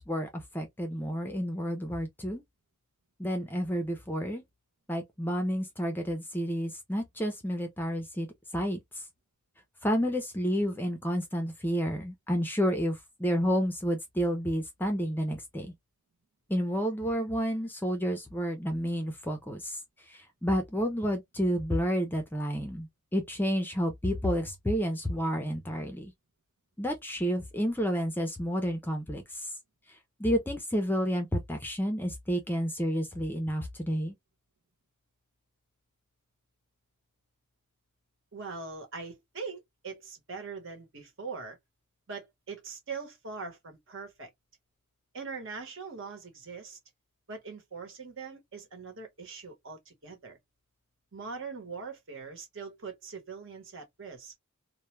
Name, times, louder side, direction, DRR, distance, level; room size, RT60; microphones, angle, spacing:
voice 1, 0.0-2.4 3.2-4.4 4.9-8.3 8.5-9.0 9.8-15.7 16.5-26.1 26.8-29.5 30.2-34.1, equal, 10° left, 0.5 m, -30 dB
voice 2, 38.3-41.6 42.1-44.3 45.1-46.8 47.3-50.4 51.1-54.3, right 4 dB, 60° right, 1.0 m, -42 dB
2.2 x 2.2 x 3.0 m
head